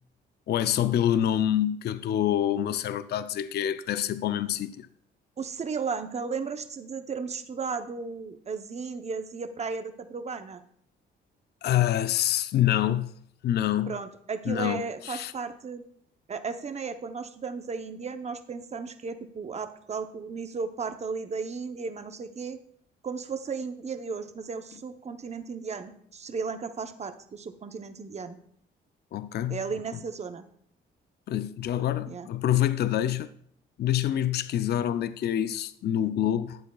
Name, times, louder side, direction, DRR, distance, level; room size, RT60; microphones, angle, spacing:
voice 1, 0.5-4.9 11.6-13.1 13.4-13.9 14.5-15.3 29.1-29.6 31.3-33.3 33.8-36.6, left 11 dB, 55° left, 0.4 m, -26 dB
voice 2, 5.4-10.6 13.9-15.8 16.3-22.6 23.0-28.4 29.5-30.4 32.1-32.3, right 5 dB, 35° right, 0.8 m, -35 dB
12.0 x 8.4 x 2.3 m
cardioid pair, 90°, 20 cm